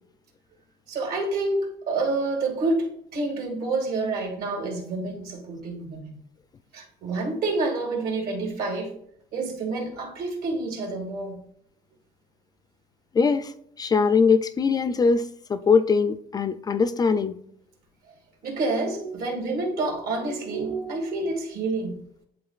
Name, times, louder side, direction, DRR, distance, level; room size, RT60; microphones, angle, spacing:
voice 1, 0.9-6.2 6.7-8.9 9.3-11.4 18.4-21.9, right 3 dB, 75° right, 2.3 m, -28 dB
voice 2, 13.1-13.5 13.8-17.4, left 5 dB, 25° left, 0.3 m, -21 dB
11.0 x 3.8 x 2.4 m
cardioid pair, 145°, 16 cm